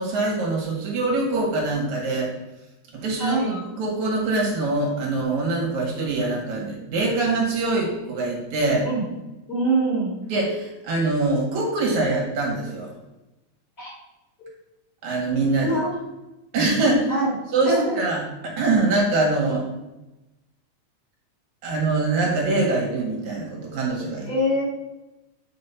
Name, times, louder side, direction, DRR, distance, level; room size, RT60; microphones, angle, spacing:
voice 1, 0.0-2.3 2.9-8.9 10.3-12.9 15.0-15.7 16.5-17.1 17.5-19.7 21.6-24.3, right 3 dB, 75° right, -1 dB, 3.2 m, -24 dB
voice 2, 3.2-3.6 8.8-9.0 9.5-10.1 13.8-13.9 15.6-15.9 17.1-17.3 17.6-18.0 24.3-24.6, right 1 dB, 25° left, -5 dB, 3.3 m, -23 dB
7.9 x 5.4 x 5.6 m, 1.0 s
omnidirectional pair, 3.4 m